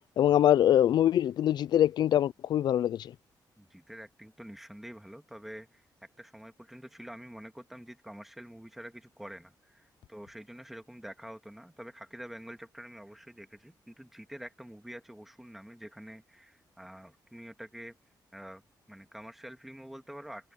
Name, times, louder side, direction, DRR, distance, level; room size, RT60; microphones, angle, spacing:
voice 1, 0.2-3.1, left 11 dB, 65° left, 0.4 m, -24 dB
voice 2, 3.6-18.0 18.3-18.6 18.9-20.5, equal, 5° right, 2.0 m, -47 dB
wide cardioid pair, 165°, 8 cm